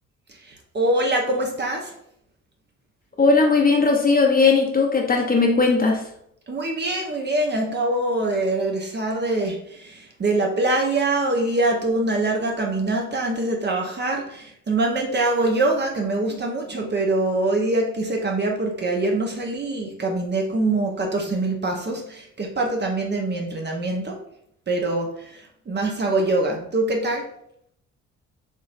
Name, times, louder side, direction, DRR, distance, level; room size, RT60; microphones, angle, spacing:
voice 1, 0.4-1.9 6.5-24.2 24.7-27.3, right 2 dB, 30° right, 1 dB, 0.8 m, -24 dB
voice 2, 3.2-6.1, left 4 dB, 25° left, 1 dB, 0.8 m, -18 dB
4.3 x 2.9 x 2.5 m, 0.72 s
figure-of-eight pair, 40°, 37 cm